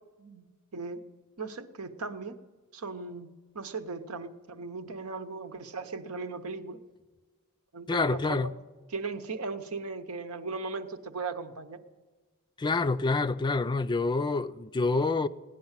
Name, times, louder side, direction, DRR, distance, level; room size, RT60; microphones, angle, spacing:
voice 1, 0.7-1.0 1.4-2.4 2.7-6.8 7.7-8.5 8.9-11.8, right 4 dB, 80° right, 0.9 m, -37 dB
voice 2, 7.9-8.5 12.6-15.3, left 3 dB, 20° left, 0.4 m, -27 dB
17.5 x 10.0 x 7.3 m
head